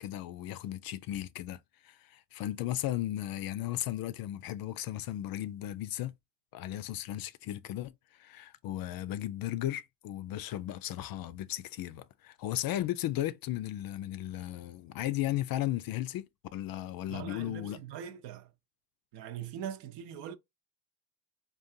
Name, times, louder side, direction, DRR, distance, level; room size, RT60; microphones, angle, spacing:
voice 1, 0.0-6.1 6.5-17.8, left 13 dB, 45° left, 0.5 m, -36 dB
voice 2, 17.1-18.5 19.1-20.4, right 9 dB, 55° right, 0.7 m, -41 dB
3.8 x 2.4 x 2.6 m
hypercardioid pair, 70°, 49 cm